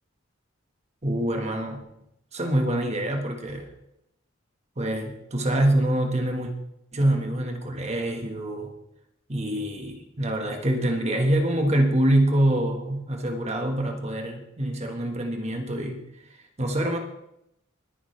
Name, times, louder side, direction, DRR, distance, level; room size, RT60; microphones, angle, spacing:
voice 1, 1.0-1.8 2.3-3.7 4.8-6.5 6.9-8.7 9.3-16.0 16.3-17.0, right 1 dB, 35° right, 3 dB, 1.6 m, -25 dB
21.0 x 10.0 x 3.4 m, 0.81 s
head